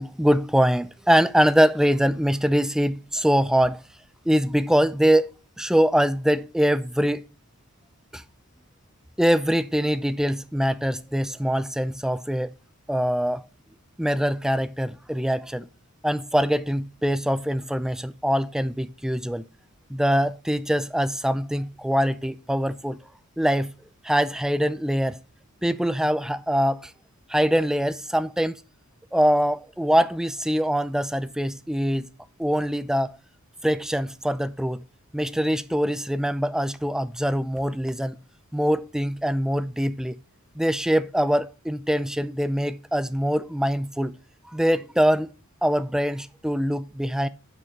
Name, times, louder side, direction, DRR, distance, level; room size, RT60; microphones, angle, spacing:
voice 1, 0.0-3.8 4.3-5.3 5.6-7.2 8.1-8.2 9.2-12.5 12.9-13.5 14.0-15.7 16.0-19.5 19.9-23.0 23.4-23.7 24.0-25.2 25.6-26.9 27.3-28.6 29.1-32.1 32.4-33.2 33.6-34.8 35.1-38.2 38.5-40.2 40.6-44.1 44.5-45.3 45.6-47.3, equal, ahead, 0.4 m, -23 dB
7.0 x 5.9 x 6.4 m
head